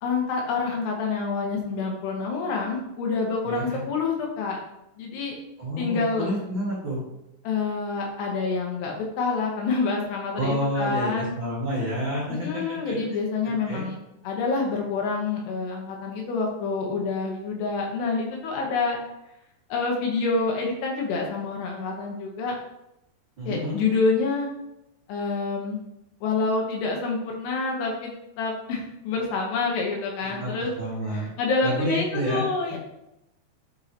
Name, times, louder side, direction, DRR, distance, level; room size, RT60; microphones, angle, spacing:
voice 1, 0.0-4.6 5.0-5.4 5.8-6.3 7.4-11.3 12.4-14.0 14.2-19.0 19.7-22.6 23.5-24.5 25.1-25.8 26.2-28.1 28.4-30.7 31.1-32.8, left 4 dB, 70° left, 0 dB, 2.8 m, -27 dB
voice 2, 3.4-3.8 5.6-7.0 10.3-12.9 13.6-13.8 23.4-23.7 30.2-31.3 31.6-32.4, equal, 45° right, -8 dB, 1.5 m, -29 dB
11.0 x 4.7 x 2.9 m, 0.87 s
omnidirectional pair, 5.6 m